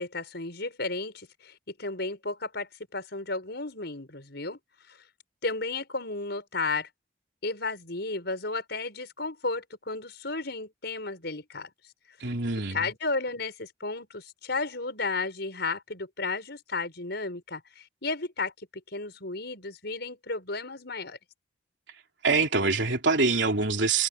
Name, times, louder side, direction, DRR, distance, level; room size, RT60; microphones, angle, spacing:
voice 1, 0.0-4.6 4.9-5.0 5.4-6.9 7.4-11.7 12.7-18.5 18.9-21.2, left 3 dB, 60° left, 7.1 m, -33 dB
voice 2, 12.2-12.8 22.2-24.1, right 3 dB, 70° right, 3.4 m, -25 dB
head